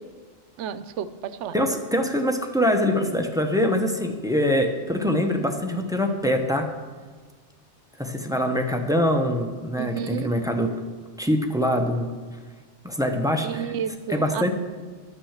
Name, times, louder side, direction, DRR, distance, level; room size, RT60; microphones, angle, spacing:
voice 1, 0.6-1.6 9.8-10.3 13.4-14.5, right 8 dB, 85° right, 13 dB, 0.9 m, -31 dB
voice 2, 1.5-6.7 8.0-10.7 11.2-12.1 12.8-13.7 14.1-14.5, equal, 5° right, 4 dB, 0.7 m, -24 dB
11.5 x 6.0 x 7.3 m, 1.4 s
omnidirectional pair, 1.2 m